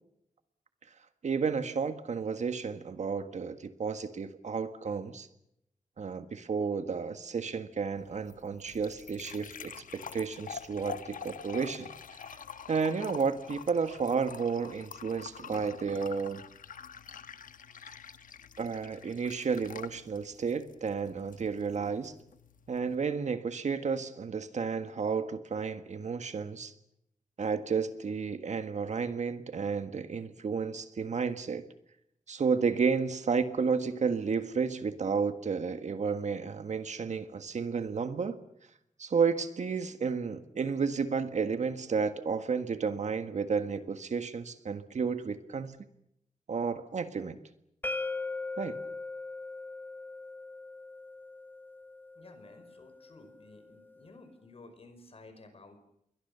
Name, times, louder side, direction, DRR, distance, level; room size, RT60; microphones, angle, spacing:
voice 1, 1.2-5.3 6.0-12.4 12.7-16.4 18.6-22.1 22.7-26.7 27.4-31.6 32.3-38.3 39.0-45.8 46.5-47.4 48.6-48.8, right 5 dB, 60° right, 9 dB, 1.6 m, -32 dB
sound 1, 8.0-22.9, left 7 dB, 85° left, 1.2 m, -47 dB
sound 2, 47.8-53.6, left 3 dB, 15° left, 1.1 m, -40 dB
voice 2, 52.2-55.8, left 2 dB, 45° left, 9 dB, 5.4 m, -54 dB
29.0 x 22.5 x 6.9 m, 0.78 s
wide cardioid pair, 170°, 14 cm